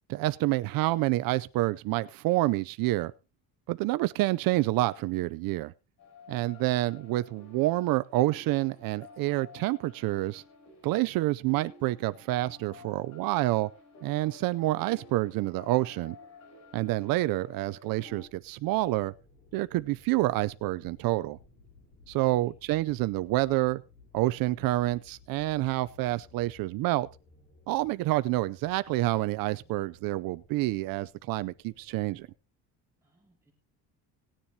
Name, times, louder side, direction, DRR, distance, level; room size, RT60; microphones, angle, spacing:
voice 1, 0.1-3.1 3.7-5.7 6.3-10.4 10.8-13.7 14.0-16.2 16.7-19.1 19.5-21.4 22.1-23.8 24.1-27.1 27.7-32.3, right 18 dB, 65° right, 0.6 m, -28 dB
sound 1, 6.0-18.3, left 4 dB, 45° left, 4.1 m, -52 dB
sound 2, 17.9-32.3, left 3 dB, 30° left, 3.7 m, -58 dB
voice 2, 22.2-22.5 33.0-33.5, right 2 dB, 10° right, 2.5 m, -61 dB
18.5 x 10.0 x 2.8 m
cardioid pair, 165°, 37 cm